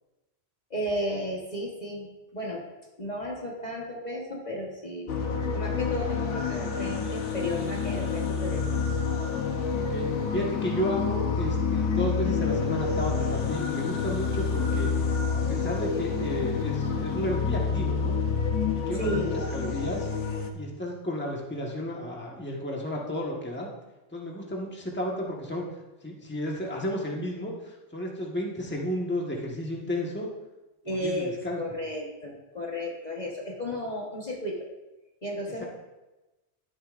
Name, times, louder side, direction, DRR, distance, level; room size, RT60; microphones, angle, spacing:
voice 1, 0.7-2.6 3.0-8.6 18.9-19.3 30.8-34.7 35.2-35.6, equal, 35° left, -2 dB, 1.4 m, -33 dB
sound 1, 5.1-20.5, left 5 dB, 80° left, 1.2 m, -28 dB
voice 2, 9.7-14.9 15.3-18.2 18.7-20.1 20.5-23.7 24.1-25.6 26.0-30.3 30.9-31.6, equal, 10° left, -2 dB, 1.3 m, -33 dB
12.5 x 9.8 x 2.5 m, 1.1 s
omnidirectional pair, 1.2 m